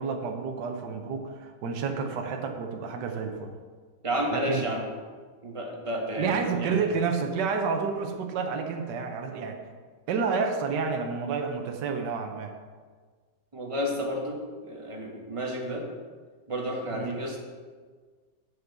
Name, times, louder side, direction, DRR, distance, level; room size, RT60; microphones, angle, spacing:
voice 1, 0.0-3.5 4.3-4.6 6.2-9.6 10.1-12.5 16.9-17.2, right 5 dB, 65° right, 4 dB, 1.5 m, -30 dB
voice 2, 4.0-4.9 5.4-6.8 13.5-15.8 16.5-17.4, equal, 15° right, -1 dB, 1.5 m, -31 dB
7.2 x 7.1 x 7.2 m, 1.5 s
omnidirectional pair, 2.1 m